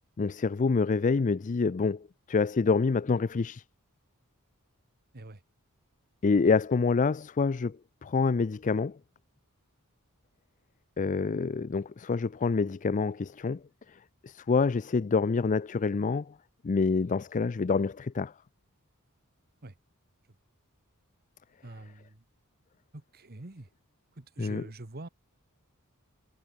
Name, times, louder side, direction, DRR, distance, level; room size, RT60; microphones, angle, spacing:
voice 1, 0.2-3.6 6.2-9.0 11.0-13.6 13.9-16.4 16.6-18.3 24.4-24.6, left 4 dB, 35° left, 0.4 m, -27 dB
voice 2, 21.6-22.2 22.9-23.7 24.2-25.1, right 2 dB, 45° right, 1.4 m, -45 dB
head